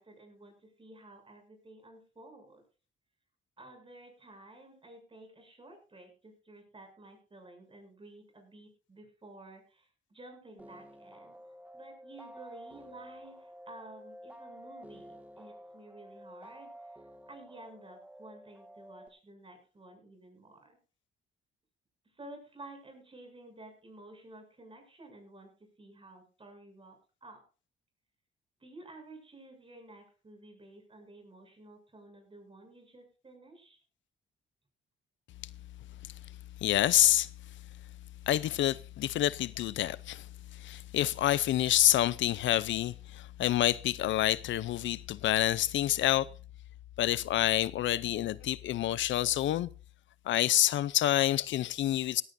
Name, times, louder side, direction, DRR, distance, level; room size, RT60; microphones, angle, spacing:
voice 1, 0.0-2.6 3.6-11.4 11.7-16.7 17.3-20.8 22.1-27.4 28.6-33.8, right 2 dB, 25° right, 7.4 m, -52 dB
sound 1, 10.6-19.1, equal, 10° right, 1.8 m, -51 dB
voice 2, 36.6-37.3 38.3-40.3 40.6-46.3 47.0-49.7 50.3-52.2, left 13 dB, 70° left, 0.6 m, -27 dB
17.0 x 15.5 x 2.6 m
cardioid pair, 90°, 20 cm